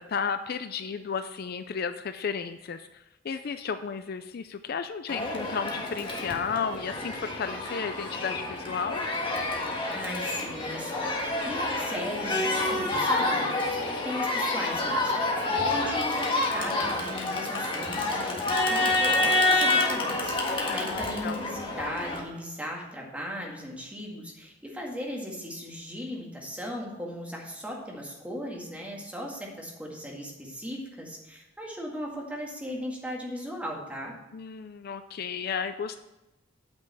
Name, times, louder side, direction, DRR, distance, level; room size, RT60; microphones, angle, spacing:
voice 1, 0.0-9.1 20.7-21.4 34.3-36.0, left 6 dB, 50° left, 10 dB, 0.4 m, -33 dB
Crowd, 5.1-22.2, left 2 dB, 25° left, 1.5 m, -28 dB
voice 2, 9.9-34.1, equal, 5° right, -2 dB, 1.9 m, -37 dB
9.1 x 5.4 x 7.6 m, 0.97 s
head